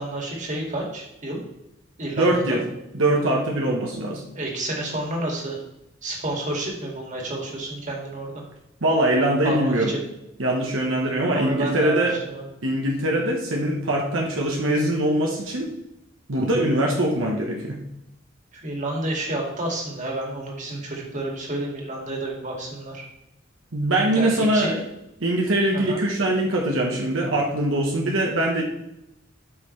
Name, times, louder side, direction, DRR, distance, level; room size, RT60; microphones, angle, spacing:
voice 1, 0.0-1.4 2.0-2.6 4.3-5.6 6.0-8.4 9.4-10.0 11.3-12.5 18.6-23.1 24.1-24.8 25.7-26.0, right 1 dB, 40° right, -1 dB, 2.3 m, -30 dB
voice 2, 2.2-2.6 2.9-4.2 8.8-9.9 10.4-12.2 12.6-15.7 16.3-17.8 23.7-24.8 25.2-28.6, right 1 dB, 75° right, -1 dB, 1.3 m, -22 dB
12.5 x 5.7 x 3.3 m, 0.84 s
head